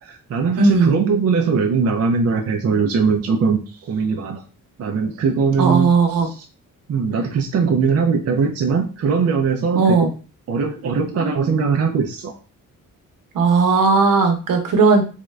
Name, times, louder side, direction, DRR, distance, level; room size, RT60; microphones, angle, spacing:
voice 1, 0.0-4.4 4.8-5.9 6.2-6.4 6.9-10.1 10.5-12.3, right 5 dB, 50° right, 3 dB, 0.5 m, -20 dB
voice 2, 0.6-0.9 5.6-6.3 9.8-10.1 13.3-15.0, right 4 dB, 75° right, 5 dB, 0.9 m, -16 dB
3.6 x 2.3 x 3.2 m, 0.34 s
cardioid pair, 105°, 33 cm